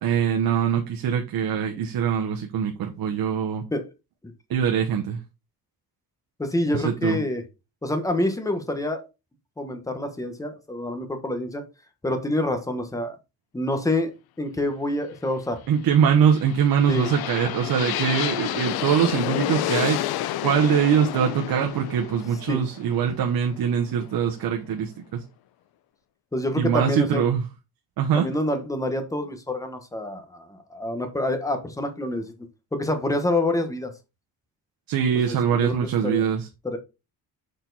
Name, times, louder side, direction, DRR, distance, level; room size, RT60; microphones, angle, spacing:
voice 1, 0.0-3.6 4.5-5.2 6.7-7.2 15.7-20.0 20.4-25.2 26.6-27.4 28.0-28.3 34.9-36.5, right 8 dB, 75° right, 1.0 m, -23 dB
voice 2, 6.4-7.4 7.8-9.0 9.6-11.6 12.0-13.2 13.5-14.1 14.4-15.6 16.9-17.1 22.5-22.6 26.3-27.3 28.1-32.3 32.7-33.9 35.1-36.2 36.6-36.8, left 1 dB, 10° left, 1.1 m, -27 dB
sound 1, 16.1-24.1, left 14 dB, 90° left, 0.5 m, -30 dB
6.7 x 4.4 x 4.0 m
cardioid pair, 170°, 36 cm